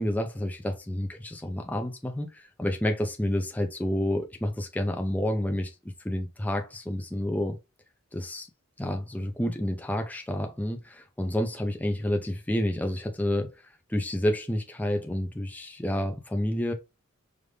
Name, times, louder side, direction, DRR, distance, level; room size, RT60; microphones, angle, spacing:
voice 1, 0.0-5.7 6.0-7.6 8.1-8.5 8.8-13.5 13.9-16.7, left 1 dB, 10° left, 0.5 m, -29 dB
5.0 x 2.5 x 3.3 m
head